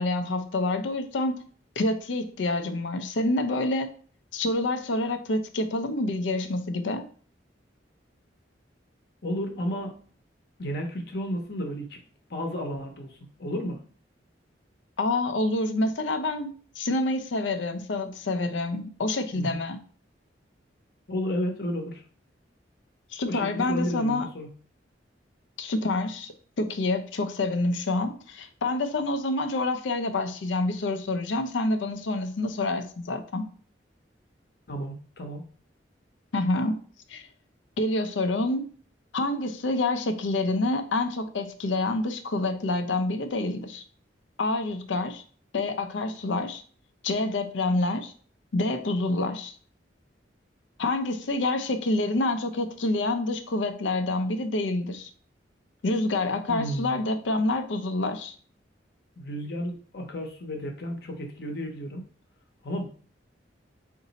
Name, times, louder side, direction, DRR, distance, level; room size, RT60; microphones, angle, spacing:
voice 1, 0.0-1.4 1.8-3.9 4.3-7.0 15.0-19.8 23.1-24.3 25.6-33.4 36.3-36.8 37.1-37.3 37.8-38.7 39.1-43.8 44.4-45.2 45.5-46.6 47.0-48.1 48.5-49.5 50.8-55.1 55.8-58.3, left 2 dB, 85° left, 0.5 m, -27 dB
voice 2, 9.2-10.0 10.6-12.0 12.3-13.8 19.3-19.6 21.1-22.0 23.3-24.5 34.7-35.4 56.5-57.0 59.2-62.0 62.6-62.9, equal, 60° left, 0.8 m, -32 dB
3.9 x 2.6 x 4.0 m
head